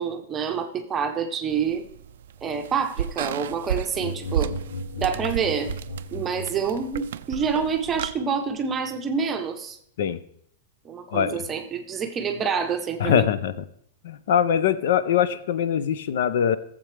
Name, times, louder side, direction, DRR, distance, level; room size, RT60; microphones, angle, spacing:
voice 1, 0.0-1.8 2.4-4.5 5.0-5.7 6.1-9.8 10.8-13.2, right 6 dB, 15° right, 5 dB, 0.8 m, -27 dB
sound 1, 1.5-8.1, right 9 dB, 70° right, 0.3 m, -33 dB
sound 2, 3.9-7.2, left 1 dB, 80° left, 0.9 m, -36 dB
voice 2, 11.1-11.4 13.0-13.6 14.0-16.6, left 9 dB, 60° left, 15 dB, 0.5 m, -22 dB
16.0 x 7.4 x 3.3 m, 0.67 s
supercardioid pair, 170°, 0 cm